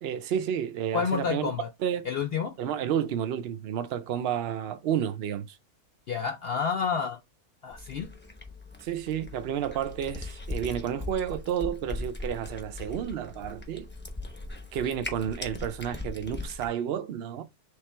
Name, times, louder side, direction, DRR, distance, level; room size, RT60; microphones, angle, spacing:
voice 1, 0.0-1.5 1.8-2.1 2.6-5.6 8.8-13.9 14.7-17.4, right 9 dB, 90° right, 0.5 m, -31 dB
voice 2, 0.9-1.7 2.0-2.5 6.1-7.2 7.6-8.1, left 6 dB, 70° left, 0.5 m, -29 dB
Cat, 7.7-16.7, left 2 dB, 10° left, 0.5 m, -39 dB
3.4 x 3.1 x 4.3 m
omnidirectional pair, 1.6 m